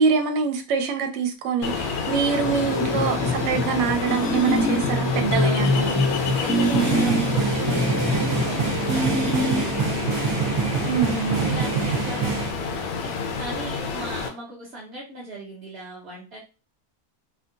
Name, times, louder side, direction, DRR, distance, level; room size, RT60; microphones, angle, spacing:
voice 1, 0.0-5.9 10.9-11.4, right 6 dB, 65° right, 0.7 m, -24 dB
Ocean, 1.6-14.3, left 5 dB, 70° left, 1.0 m, -29 dB
sound 1, 2.4-9.9, left 1 dB, 20° left, 0.6 m, -25 dB
voice 2, 5.0-5.7 6.4-10.3 11.5-16.4, right 1 dB, 50° right, 1.1 m, -38 dB
sound 2, 5.0-5.2 6.3-12.5, right 6 dB, 80° right, 1.3 m, -26 dB
3.6 x 2.3 x 2.5 m
omnidirectional pair, 1.6 m